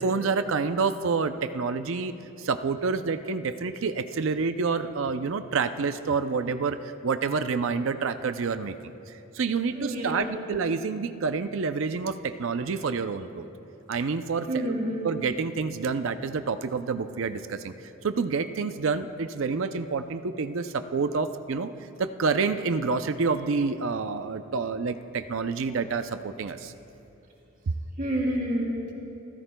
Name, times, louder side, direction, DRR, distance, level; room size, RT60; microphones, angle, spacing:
voice 1, 0.0-6.8 7.0-8.9 9.3-13.5 13.9-14.7 15.0-17.7 18.0-21.7 22.0-26.7 27.7-27.8, right 4 dB, 65° right, 9 dB, 0.5 m, -28 dB
voice 2, 9.7-10.3 14.5-15.1 28.0-28.9, right 1 dB, 40° right, -3 dB, 3.1 m, -29 dB
29.0 x 15.5 x 2.2 m, 2.9 s
head